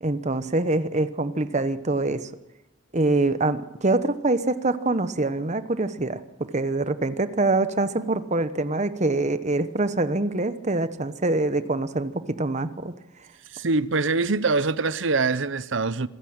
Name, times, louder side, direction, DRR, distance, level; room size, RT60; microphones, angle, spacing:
voice 1, 0.0-2.3 2.9-12.9, right 2 dB, 35° right, 1.1 m, -25 dB
voice 2, 13.5-16.1, right 3 dB, 65° right, 0.8 m, -24 dB
26.0 x 15.0 x 8.9 m
head